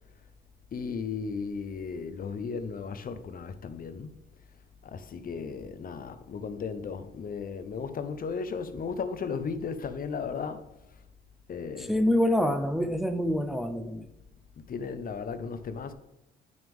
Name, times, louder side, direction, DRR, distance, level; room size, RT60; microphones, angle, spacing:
voice 1, 0.7-4.2 4.8-10.7 11.5-12.0 14.6-15.9, left 5 dB, 45° left, 0.7 m, -35 dB
voice 2, 11.8-14.1, left 1 dB, ahead, 0.6 m, -26 dB
8.9 x 6.0 x 3.6 m
cardioid pair, 90°, 20 cm